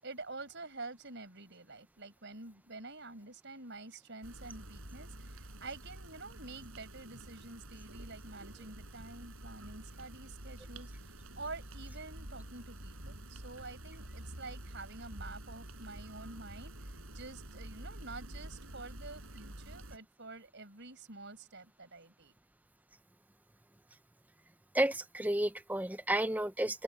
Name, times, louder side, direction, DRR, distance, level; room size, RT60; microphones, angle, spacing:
voice 1, 0.0-22.3, right 3 dB, 55° right, 5.9 m, -48 dB
sound 1, 4.2-20.0, right 1 dB, 75° right, 7.3 m, -48 dB
voice 2, 24.7-26.8, right 1 dB, 5° right, 0.6 m, -31 dB
open air
head